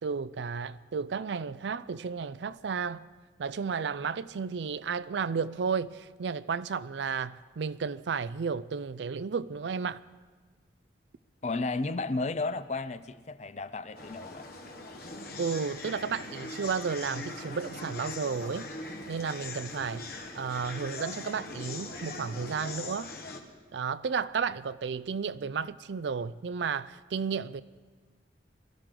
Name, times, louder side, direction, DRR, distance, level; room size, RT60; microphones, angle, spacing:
voice 1, 0.0-3.1 3.4-10.0 15.4-18.7 19.1-23.1 23.7-27.6, right 5 dB, 80° right, 0.4 m, -33 dB
voice 2, 11.4-14.5, left 3 dB, 40° left, 0.5 m, -33 dB
sound 1, 13.9-23.4, left 3 dB, 55° left, 1.4 m, -41 dB
22.5 x 14.0 x 3.8 m
head